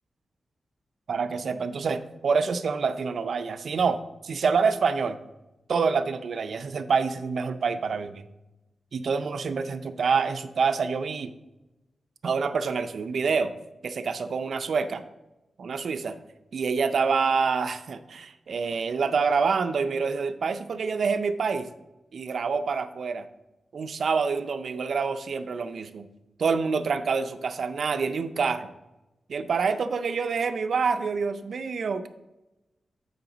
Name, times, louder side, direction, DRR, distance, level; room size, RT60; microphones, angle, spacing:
voice 1, 1.1-5.2 5.7-8.2 8.9-11.3 12.2-13.5 13.8-15.0 15.6-16.2 16.5-21.7 22.1-23.3 23.7-26.1 26.4-28.7 29.3-32.1, right 5 dB, 60° right, 10 dB, 0.4 m, -27 dB
7.9 x 5.9 x 3.9 m, 1.0 s
wide cardioid pair, 160°, 0 cm